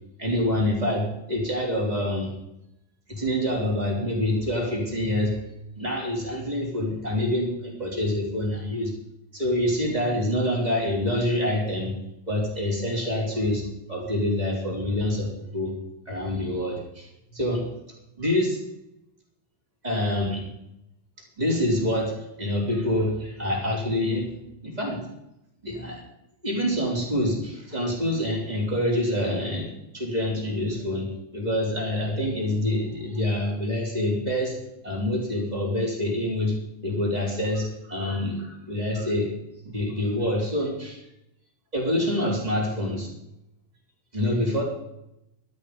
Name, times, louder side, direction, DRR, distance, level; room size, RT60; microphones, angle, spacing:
voice 1, 0.2-2.3 3.1-5.4 5.8-8.9 9.3-11.9 12.3-13.6 13.9-15.7 16.1-17.7 18.2-18.6 19.8-20.5 21.4-24.3 24.6-25.0 25.6-26.0 26.4-34.6 34.8-39.3 39.6-41.0 41.7-43.1 44.1-44.6, left 1 dB, 10° right, -3 dB, 3.6 m, -26 dB
13.0 x 12.5 x 5.3 m, 0.84 s
omnidirectional pair, 5.6 m